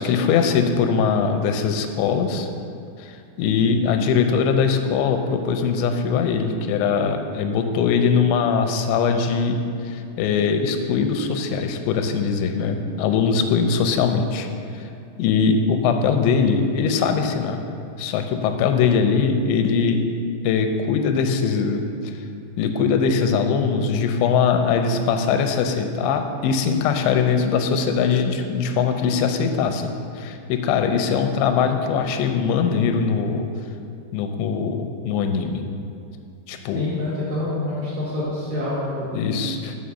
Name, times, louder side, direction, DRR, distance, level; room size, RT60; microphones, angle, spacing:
voice 1, 0.0-2.5 3.0-14.5 14.8-14.9 15.2-17.6 18.0-20.0 20.4-22.1 22.6-33.5 34.1-35.6 36.5-36.9 39.1-39.8, left 6 dB, 90° left, 6 dB, 2.9 m, -21 dB
voice 2, 36.8-39.2, left 1 dB, 55° right, -8 dB, 2.3 m, -27 dB
7.0 x 5.6 x 6.4 m, 2.4 s
omnidirectional pair, 5.0 m